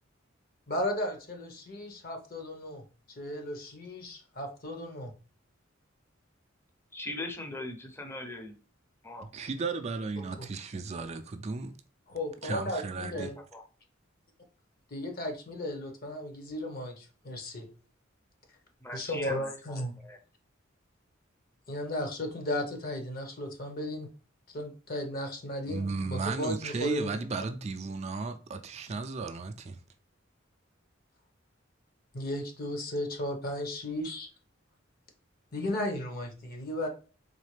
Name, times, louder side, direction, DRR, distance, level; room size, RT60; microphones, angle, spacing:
voice 1, 0.7-2.8 3.2-5.1 12.1-13.3 14.9-17.7 18.9-20.0 21.7-24.1 24.5-27.1 32.1-34.3 35.5-36.9, left 1 dB, 50° left, 1.0 m, -35 dB
voice 2, 6.9-8.6 9.0-9.3 13.5-13.6 18.8-20.2, left 1 dB, 10° left, 0.6 m, -40 dB
voice 3, 9.3-11.7 12.4-13.3 25.7-29.8, right 4 dB, 35° right, 0.4 m, -34 dB
4.1 x 3.2 x 3.2 m
head